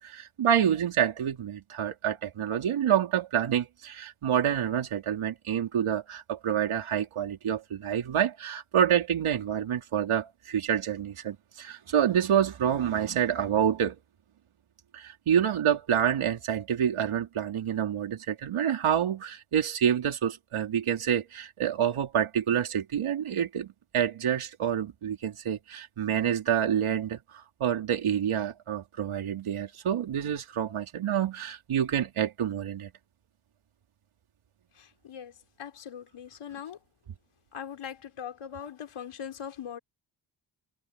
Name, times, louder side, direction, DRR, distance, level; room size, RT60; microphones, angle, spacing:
voice 1, 0.0-14.0 14.9-27.2 27.6-32.9, right 9 dB, 85° right, 3.3 m, -27 dB
voice 2, 34.8-35.3 35.6-36.8 37.5-39.8, left 8 dB, 85° left, 5.3 m, -40 dB
wide cardioid pair, 110°, 48 cm